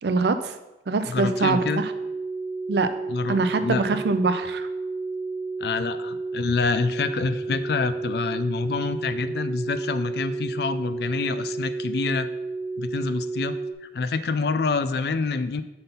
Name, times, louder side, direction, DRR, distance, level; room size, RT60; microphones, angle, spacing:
voice 1, 0.0-0.6 0.9-1.9 2.7-2.9 3.3-4.7, right 3 dB, 70° right, 10 dB, 0.5 m, -24 dB
voice 2, 1.1-1.8 3.1-4.0 5.6-12.3 12.8-13.6 13.8-15.6, left 4 dB, 65° left, 12 dB, 0.4 m, -27 dB
sound 1, 1.1-13.7, right 3 dB, 10° right, 0.9 m, -31 dB
5.7 x 4.0 x 5.3 m, 1.0 s
head